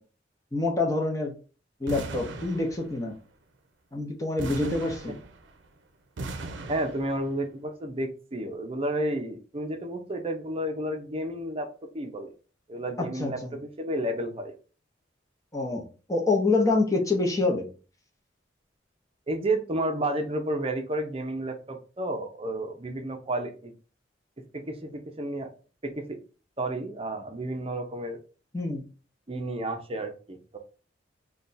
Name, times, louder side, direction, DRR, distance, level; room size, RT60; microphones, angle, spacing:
voice 1, 0.5-1.4 1.8-3.2 3.9-5.2 13.0-13.6 15.5-17.7 28.5-28.8, left 3 dB, 20° left, 1 dB, 0.8 m, -26 dB
sound 1, 1.9-3.1 4.4-5.7 6.2-7.3, right 2 dB, 80° right, 0.6 m, -38 dB
voice 2, 6.7-11.7 11.9-12.3 12.7-14.5 19.3-23.7 24.5-25.5 25.8-26.2 26.6-28.2 29.3-30.6, right 1 dB, 30° right, 4 dB, 0.6 m, -31 dB
3.3 x 2.3 x 4.0 m, 0.36 s
head